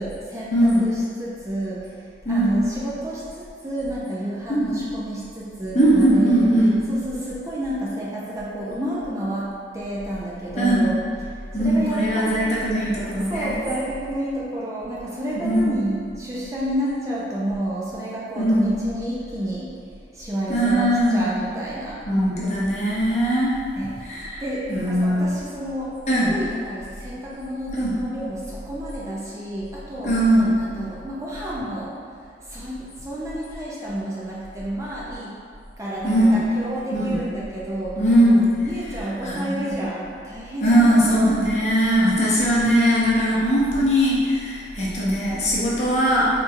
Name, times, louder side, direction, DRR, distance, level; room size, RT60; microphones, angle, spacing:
voice 1, 0.0-6.4 6.9-9.5 9.7-11.0 11.3-12.4 13.3-19.7 20.1-22.0 23.8-24.1 24.4-25.9 26.3-30.1 30.6-31.9 32.4-35.3 35.8-38.0 38.6-41.2, right 1 dB, 20° right, -7 dB, 0.3 m, -30 dB
voice 2, 0.5-0.8 2.2-2.6 4.5-4.7 5.7-6.7 10.6-10.9 11.5-13.6 15.4-15.8 18.3-18.8 20.5-21.3 22.1-23.5 24.0-25.2 26.1-26.3 27.7-27.9 30.0-30.5 36.0-36.4 36.9-37.2 38.0-39.8 40.6-46.3, equal, 40° left, -7 dB, 0.7 m, -20 dB
3.7 x 2.6 x 2.4 m, 2.2 s
head